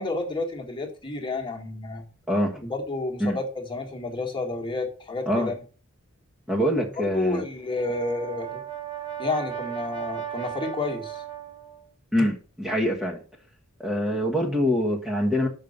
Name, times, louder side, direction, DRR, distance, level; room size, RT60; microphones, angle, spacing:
voice 1, 0.0-2.1 2.6-5.5 7.0-8.6 9.2-11.2, left 3 dB, 25° left, 1.7 m, -30 dB
voice 2, 2.3-2.6 3.2-3.4 5.3-5.5 6.5-7.4 12.1-13.2 13.8-15.5, equal, 5° right, 1.3 m, -24 dB
Brass instrument, 7.6-11.8, right 10 dB, 20° right, 1.4 m, -35 dB
6.5 x 5.4 x 6.6 m
head